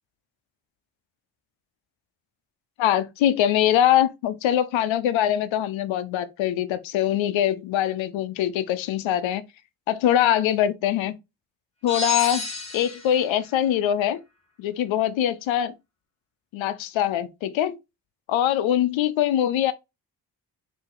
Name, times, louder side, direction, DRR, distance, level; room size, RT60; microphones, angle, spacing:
voice 1, 2.8-9.4 9.9-11.1 11.8-14.2 14.6-15.7 16.5-17.8 18.3-19.7, left 11 dB, 90° left, 0.6 m, -23 dB
sound 1, 11.9-13.2, left 3 dB, 15° left, 2.5 m, -30 dB
4.2 x 2.8 x 3.8 m
cardioid pair, 55°, 45 cm